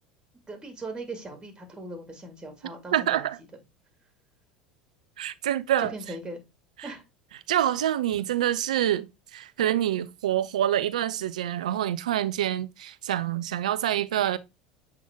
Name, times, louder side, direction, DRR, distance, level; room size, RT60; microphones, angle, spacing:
voice 1, 0.5-3.3 5.8-6.4 6.8-7.0, right 2 dB, 20° right, 1.9 m, -39 dB
voice 2, 2.9-3.4 5.2-5.9 7.5-14.4, right 11 dB, 75° right, 0.5 m, -26 dB
7.6 x 3.7 x 3.5 m
figure-of-eight pair, 75°, 4 cm